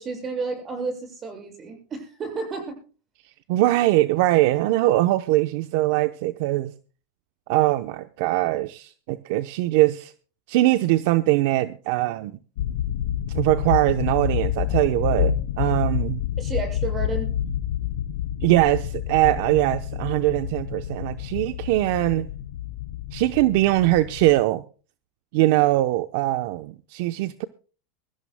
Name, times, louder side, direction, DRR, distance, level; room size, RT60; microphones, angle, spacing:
voice 1, 0.0-2.8 16.4-17.3, right 4 dB, 25° right, 7.0 m, -31 dB
voice 2, 3.5-6.7 7.5-10.1 10.5-12.3 13.3-16.2 18.4-22.3 23.1-24.6 25.3-27.4, right 17 dB, 65° right, 0.8 m, -21 dB
sound 1, 12.6-24.4, left 11 dB, 80° left, 1.0 m, -28 dB
23.5 x 14.5 x 2.2 m
supercardioid pair, 135°, 0 cm